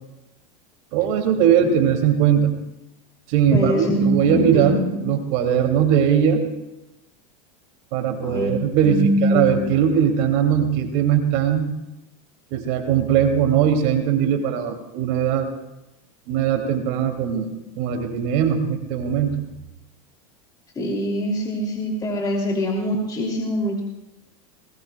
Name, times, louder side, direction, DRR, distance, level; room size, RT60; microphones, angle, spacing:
voice 1, 0.9-2.5 3.3-6.4 7.9-11.7 12.5-15.5 16.3-17.5 17.8-19.4, right 8 dB, 60° right, 3 dB, 2.6 m, -20 dB
voice 2, 3.5-5.0 8.2-8.5 8.8-9.6 20.7-23.8, equal, 20° left, -1 dB, 2.8 m, -23 dB
20.0 x 20.0 x 2.3 m, 0.96 s
supercardioid pair, 115°, 18 cm